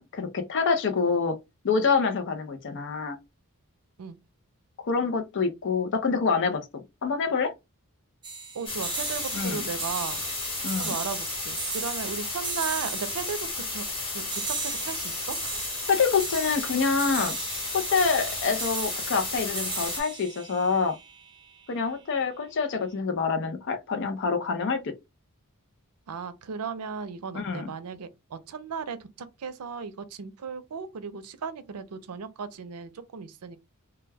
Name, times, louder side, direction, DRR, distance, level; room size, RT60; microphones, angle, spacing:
voice 1, 0.0-1.4 1.6-3.2 4.8-7.5 9.3-9.7 10.6-10.9 15.9-17.4 17.7-21.0 21.7-24.9 27.3-27.7, left 5 dB, 55° left, 0.5 m, -26 dB
sound 1, 8.2-21.7, right 5 dB, 20° right, 0.5 m, -38 dB
voice 2, 8.5-10.2 10.8-13.8 14.1-15.6 26.1-33.6, right 5 dB, 90° right, 0.5 m, -36 dB
sound 2, 8.7-20.0, left 3 dB, 25° left, 1.1 m, -33 dB
2.2 x 2.2 x 3.3 m
head